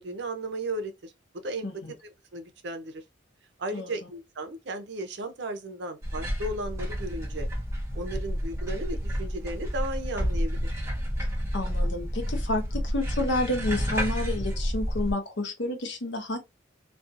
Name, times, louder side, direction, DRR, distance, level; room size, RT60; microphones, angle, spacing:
voice 1, 0.0-1.7 2.0-3.0 3.6-7.5 7.9-10.7, right 1 dB, 60° right, 0.6 m, -35 dB
voice 2, 3.7-4.1 11.5-16.4, left 2 dB, 60° left, 0.7 m, -30 dB
sound 1, 6.0-15.1, equal, 15° right, 0.5 m, -30 dB
2.5 x 2.3 x 2.5 m
head